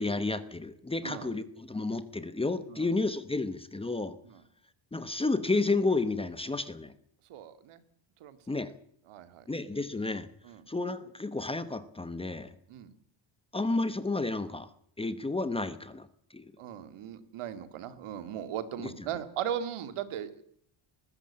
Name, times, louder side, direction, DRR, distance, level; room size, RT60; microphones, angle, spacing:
voice 1, 0.0-4.2 4.9-6.9 8.5-8.7 9.5-10.3 10.7-12.5 13.5-14.7 15.0-16.1 16.3-16.5 18.8-18.9, left 3 dB, 10° left, 13 dB, 0.9 m, -31 dB
voice 2, 7.3-7.8 8.2-8.6 9.1-9.5 10.4-10.6 12.7-12.9 16.6-20.4, right 9 dB, 80° right, 11 dB, 2.3 m, -38 dB
20.5 x 15.0 x 8.7 m, 0.65 s
cardioid pair, 180°, 49 cm